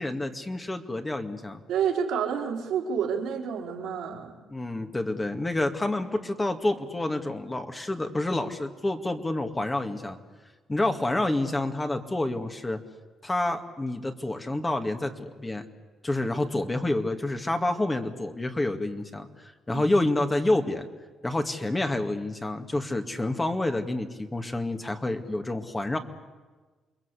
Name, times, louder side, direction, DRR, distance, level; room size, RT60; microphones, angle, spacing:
voice 1, 0.0-1.6 4.5-10.2 10.7-12.8 13.2-15.6 16.0-20.9 21.2-26.0, left 2 dB, 20° left, 6 dB, 2.2 m, -28 dB
voice 2, 1.7-4.4 19.7-19.9, right 7 dB, 80° right, 0 dB, 4.1 m, -29 dB
29.0 x 21.5 x 8.4 m, 1.3 s
cardioid pair, 90°, 0 cm